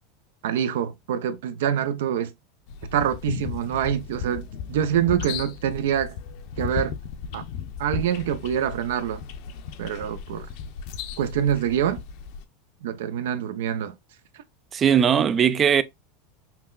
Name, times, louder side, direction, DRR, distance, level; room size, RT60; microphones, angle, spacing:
voice 1, 0.4-2.3 2.9-6.2 6.6-6.9 7.3-7.4 7.8-9.2 9.8-10.5 11.2-12.0 12.8-13.9, right 9 dB, 80° right, 0.6 m, -25 dB
sound 1, 2.7-12.4, left 7 dB, 55° left, 0.6 m, -36 dB
voice 2, 14.7-15.8, right 8 dB, 25° right, 0.3 m, -19 dB
5.6 x 2.2 x 2.3 m
supercardioid pair, 145°, 0 cm